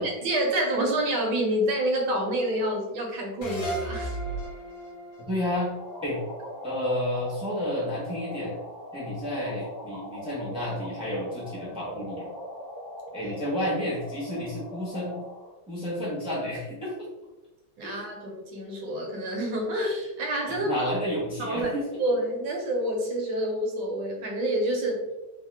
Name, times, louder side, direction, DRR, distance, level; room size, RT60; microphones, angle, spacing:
voice 1, 0.0-4.2 13.2-13.3 17.8-20.9 21.4-25.1, right 1 dB, 70° right, 0 dB, 1.2 m, -28 dB
sound 1, 3.4-6.7, right 1 dB, 80° left, 1.5 m, -36 dB
voice 2, 5.2-5.7 6.0-6.2 6.6-8.5 8.9-12.3 13.1-15.2 15.7-16.9 17.8-18.1 20.4-21.8, left 1 dB, 5° right, -7 dB, 0.5 m, -31 dB
sound 2, 5.5-15.5, left 1 dB, 85° right, 0.4 m, -41 dB
3.6 x 2.0 x 3.3 m, 1.1 s
omnidirectional pair, 2.2 m